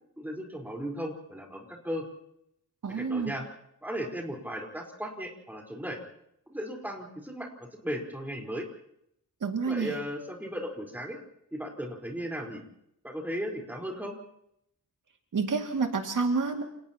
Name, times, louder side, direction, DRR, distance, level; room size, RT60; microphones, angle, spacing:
voice 1, 0.2-2.1 2.9-3.4 3.8-6.0 6.5-7.5 7.8-8.6 9.7-11.2 11.5-12.6 13.0-14.1, equal, 5° right, 0 dB, 4.4 m, -36 dB
voice 2, 2.8-3.3 9.4-10.0 15.3-16.6, right 4 dB, 65° right, 2 dB, 2.4 m, -28 dB
29.5 x 29.5 x 3.0 m, 0.75 s
wide cardioid pair, 165°, 34 cm